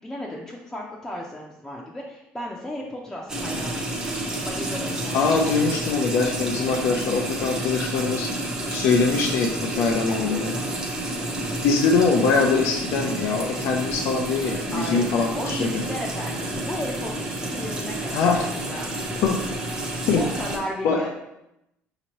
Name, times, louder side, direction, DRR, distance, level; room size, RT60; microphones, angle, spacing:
voice 1, 0.0-4.0 4.4-5.4 9.6-10.7 14.7-15.0 15.3-19.0 20.2-21.1, left 1 dB, 10° left, -4 dB, 0.6 m, -35 dB
sound 1, 3.3-20.6, right 1 dB, 15° right, 0.8 m, -30 dB
voice 2, 5.1-8.3 8.7-10.5 11.6-15.7 18.1-18.5 19.2-19.4 19.7-19.8 20.1-20.2 20.8-21.0, left 4 dB, 70° left, 1 dB, 0.5 m, -22 dB
5.2 x 2.9 x 3.0 m, 0.86 s
cardioid pair, 115°, 5 cm